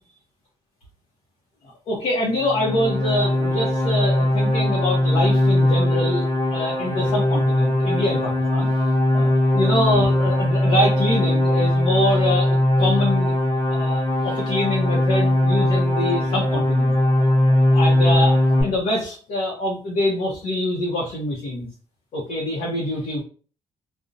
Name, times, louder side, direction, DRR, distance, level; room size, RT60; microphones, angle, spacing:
voice 1, 1.6-13.3 13.7-16.9 17.7-21.7 22.1-23.2, left 1 dB, 75° left, -3 dB, 0.7 m, -25 dB
sound 1, 2.3-18.6, left 1 dB, 30° left, 1.0 m, -20 dB
2.6 x 2.0 x 2.5 m, 0.39 s
cardioid pair, 85°, 13 cm